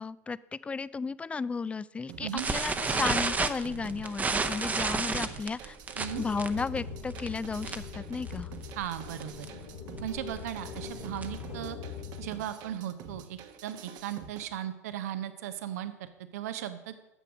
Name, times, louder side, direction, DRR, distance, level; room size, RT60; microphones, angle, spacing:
voice 1, 0.0-5.8 6.2-8.5, left 4 dB, 15° left, 19 dB, 0.3 m, -34 dB
sound 1, 2.1-14.4, right 7 dB, 50° right, 1.0 m, -48 dB
sound 2, 2.4-8.0 8.3-8.5 8.8-8.9 9.2-9.5 10.0-11.5, right 4 dB, 20° right, 0.8 m, -31 dB
sound 3, 6.0-12.3, left 6 dB, 50° left, 1.8 m, -42 dB
voice 2, 8.8-9.5 10.0-11.8 12.2-16.1 16.3-16.9, right 11 dB, 75° right, 11 dB, 0.8 m, -37 dB
9.8 x 6.9 x 6.1 m, 1.0 s
hypercardioid pair, 90°, 8 cm